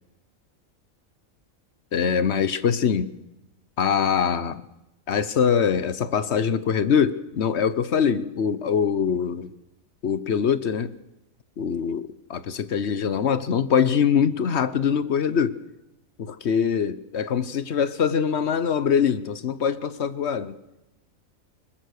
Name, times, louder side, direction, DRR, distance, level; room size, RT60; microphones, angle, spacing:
voice 1, 1.9-3.1 3.8-4.6 5.1-9.5 10.0-10.9 11.6-15.6 16.2-20.5, left 7 dB, 55° left, 1.1 m, -23 dB
21.5 x 20.5 x 6.5 m
omnidirectional pair, 1.4 m